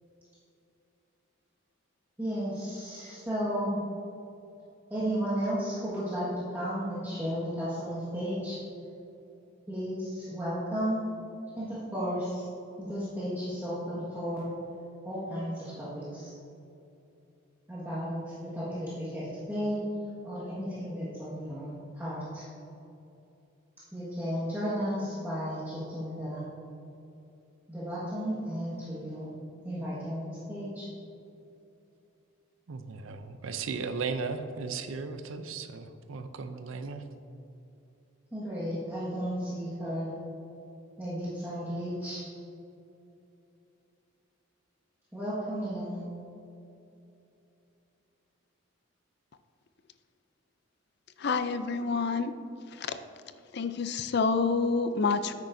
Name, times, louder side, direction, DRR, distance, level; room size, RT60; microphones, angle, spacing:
voice 1, 2.2-3.8 4.9-6.3 6.5-8.6 9.7-11.0 11.5-12.4 12.8-14.5 15.0-16.3 17.7-19.8 20.2-22.5 23.9-26.4 27.7-29.3 29.6-30.8 38.3-40.2 41.0-42.2 45.1-46.1, equal, 10° right, -11 dB, 1.6 m, -34 dB
voice 2, 32.7-37.0, right 4 dB, 75° right, 9 dB, 0.5 m, -36 dB
voice 3, 51.2-52.3 52.7-53.0 53.5-55.3, left 4 dB, 50° left, 11 dB, 0.4 m, -28 dB
9.7 x 8.9 x 2.7 m, 2.8 s
head